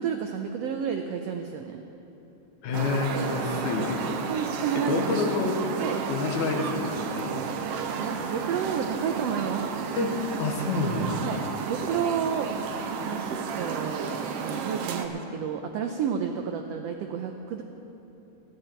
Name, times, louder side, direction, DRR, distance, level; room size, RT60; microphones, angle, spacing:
voice 1, 0.0-1.8 4.3-5.0 5.8-6.0 8.0-9.7 11.2-12.5 13.0-17.6, right 7 dB, 90° right, 5 dB, 1.4 m, -31 dB
voice 2, 2.6-4.0 4.9-5.6 6.1-7.4 10.0-11.2, left 3 dB, 70° left, 2 dB, 2.5 m, -28 dB
sound 1, 2.7-15.1, right 6 dB, 75° right, 1.4 m, -32 dB
22.5 x 9.6 x 4.4 m, 3.0 s
omnidirectional pair, 3.6 m